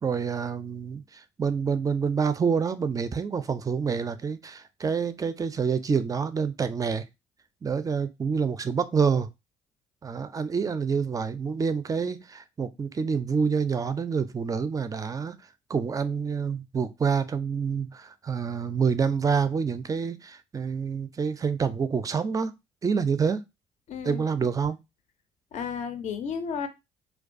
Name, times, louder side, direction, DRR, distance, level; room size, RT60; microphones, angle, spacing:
voice 1, 0.0-7.1 7.6-9.3 10.0-15.4 15.7-22.5 22.8-23.4 24.0-24.8, right 6 dB, 25° right, 0.4 m, -27 dB
voice 2, 23.9-24.2 25.5-26.7, left 6 dB, 55° left, 0.5 m, -32 dB
2.3 x 2.2 x 2.5 m
hypercardioid pair, 60°, 15 cm